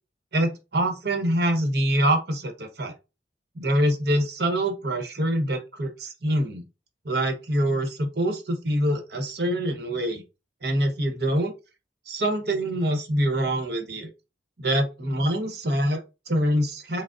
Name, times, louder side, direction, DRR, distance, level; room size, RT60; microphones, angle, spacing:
voice 1, 0.3-2.9 3.5-6.6 7.0-10.2 10.6-11.5 12.1-14.1 14.6-17.0, right 1 dB, 60° right, 5 dB, 1.0 m, -25 dB
6.1 x 2.1 x 2.5 m, 0.27 s
head